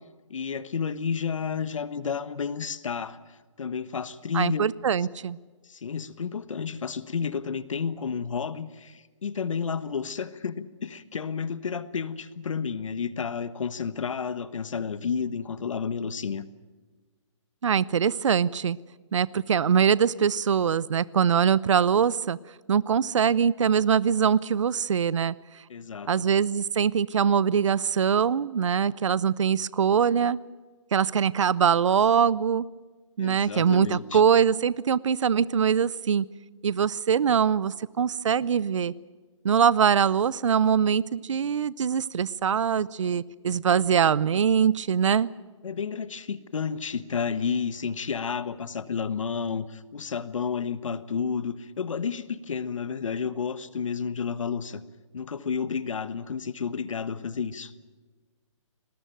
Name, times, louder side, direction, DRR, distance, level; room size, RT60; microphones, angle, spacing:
voice 1, 0.3-4.6 5.7-16.4 25.7-26.3 33.2-34.2 45.6-54.8 55.1-57.7, left 6 dB, 75° left, 14 dB, 1.3 m, -31 dB
voice 2, 4.3-5.4 17.6-18.8 19.1-22.4 22.7-25.3 26.1-30.4 30.9-32.6 33.2-36.3 36.6-38.9 39.4-45.3, right 7 dB, 70° right, 20 dB, 0.7 m, -23 dB
20.5 x 18.5 x 9.2 m, 1.3 s
hypercardioid pair, 170°, 17 cm